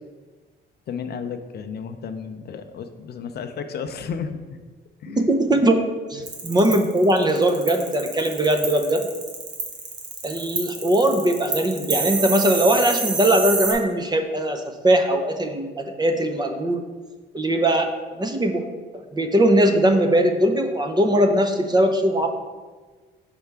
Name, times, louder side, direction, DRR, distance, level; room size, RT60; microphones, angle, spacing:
voice 1, 0.9-4.4 5.0-5.6 6.2-6.3, left 6 dB, 55° left, 8 dB, 0.5 m, -33 dB
voice 2, 5.1-5.8 6.1-9.1 10.2-16.8 17.3-17.9 18.2-18.7 18.9-22.3, right 1 dB, 20° right, 5 dB, 0.6 m, -20 dB
sound 1, 6.3-13.7, right 4 dB, 60° right, 1.3 m, -27 dB
6.6 x 4.7 x 3.4 m, 1.4 s
cardioid pair, 90°, 20 cm